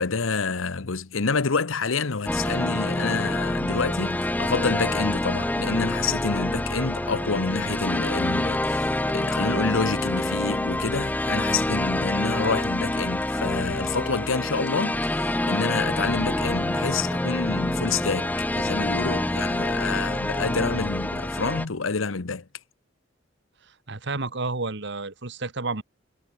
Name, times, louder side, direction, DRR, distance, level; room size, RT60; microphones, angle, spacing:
voice 1, 0.0-22.5, left 4 dB, 90° left, 1.0 m, -28 dB
sound 1, 2.3-21.7, left 1 dB, 10° left, 0.5 m, -27 dB
voice 2, 23.6-25.8, right 3 dB, 60° right, 1.7 m, -31 dB
head